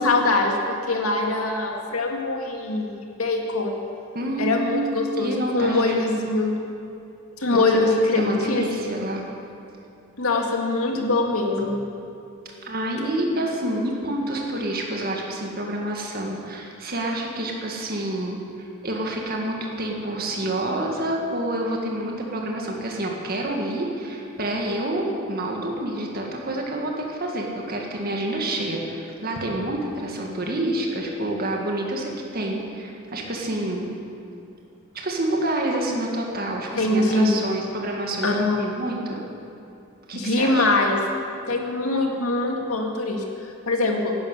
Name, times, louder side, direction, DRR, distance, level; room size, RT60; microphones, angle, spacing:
voice 1, 0.0-3.7 4.4-6.6 7.4-8.7 10.2-11.9 36.8-37.4 38.2-38.6 40.1-41.0 41.5-44.2, left 2 dB, 85° left, 1 dB, 2.1 m, -23 dB
voice 2, 4.1-6.0 7.5-9.2 12.6-33.9 34.9-39.2 40.1-40.7, right 1 dB, 45° right, 0 dB, 2.0 m, -28 dB
11.5 x 11.5 x 8.4 m, 2.6 s
head